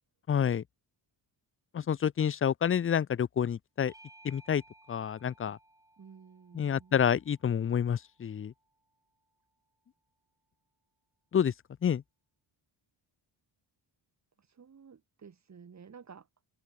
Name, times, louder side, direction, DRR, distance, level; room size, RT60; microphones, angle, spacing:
voice 1, 0.3-0.6 1.7-3.9 4.2-4.6 4.9-5.6 6.5-8.5 11.3-11.5 11.8-12.0, left 8 dB, 30° left, 0.6 m, -28 dB
Bell / Doorbell, 3.8-8.7, right 1 dB, 5° right, 3.9 m, -60 dB
voice 2, 6.0-7.0 14.4-16.3, right 6 dB, 35° right, 3.2 m, -53 dB
open air
cardioid pair, 145°, 46 cm